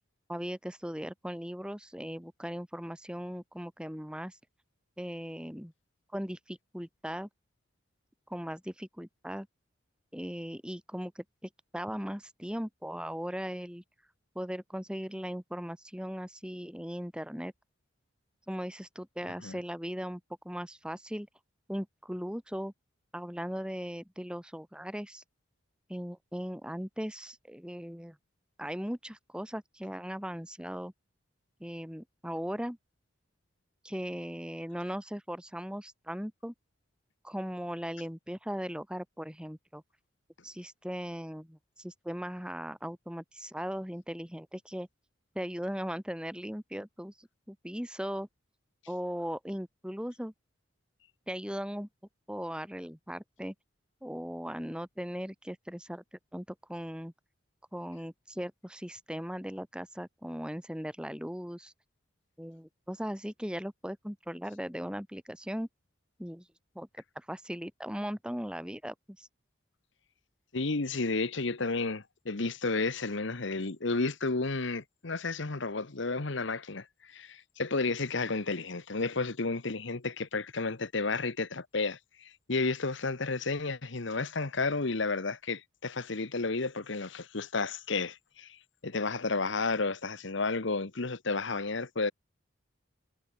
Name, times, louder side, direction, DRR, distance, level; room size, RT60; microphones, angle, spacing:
voice 1, 0.3-4.4 5.0-5.7 6.1-7.3 8.3-9.5 10.1-13.8 14.3-17.5 18.5-21.3 21.7-22.7 23.1-25.2 25.9-28.2 28.6-30.9 31.6-32.8 33.8-36.5 37.2-39.8 40.4-44.9 45.3-48.3 48.9-50.3 51.3-51.9 52.3-53.5 54.0-56.0 56.3-57.1 57.7-61.7 62.4-65.7 66.2-66.5 66.7-69.3, equal, 5° right, 2.6 m, -38 dB
voice 2, 70.5-92.1, left 3 dB, 65° left, 1.2 m, -32 dB
head